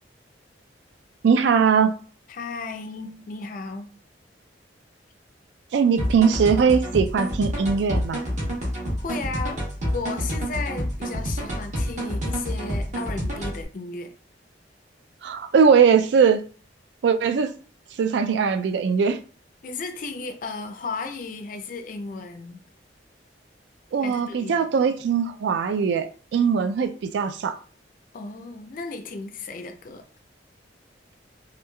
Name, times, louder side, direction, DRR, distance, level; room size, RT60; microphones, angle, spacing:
voice 1, 1.2-2.0 5.7-8.2 15.2-16.4 17.0-17.5 18.0-19.2 23.9-27.5, right 6 dB, 70° right, 0.3 m, -20 dB
voice 2, 2.3-3.9 9.0-9.6 9.9-14.2 19.6-22.6 24.0-24.7 28.1-30.0, left 4 dB, 45° left, 0.4 m, -34 dB
sound 1, 6.0-13.6, equal, 40° right, 0.8 m, -28 dB
3.0 x 2.3 x 2.2 m
head